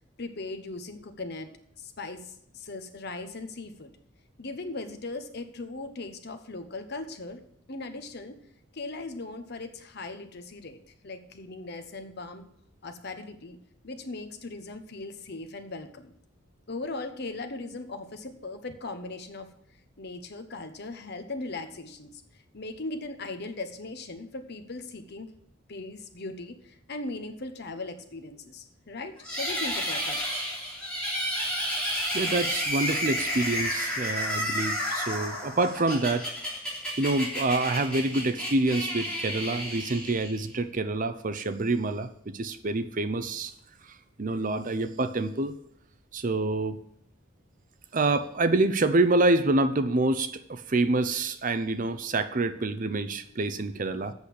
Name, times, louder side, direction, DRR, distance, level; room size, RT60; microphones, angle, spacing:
voice 1, 0.2-1.5 1.8-3.9 4.4-7.4 7.7-8.4 8.7-10.8 11.0-12.5 12.8-13.6 13.8-16.1 16.7-19.5 20.0-22.2 22.5-25.3 25.7-30.2, left 2 dB, 50° left, 8 dB, 1.1 m, -38 dB
sound 1, 29.2-40.6, equal, 5° left, 3.2 m, -31 dB
voice 2, 32.1-36.3 37.0-43.5 44.2-45.5 46.1-46.8 47.9-54.1, right 2 dB, 40° right, 11 dB, 0.6 m, -27 dB
8.1 x 6.5 x 8.3 m, 0.71 s
head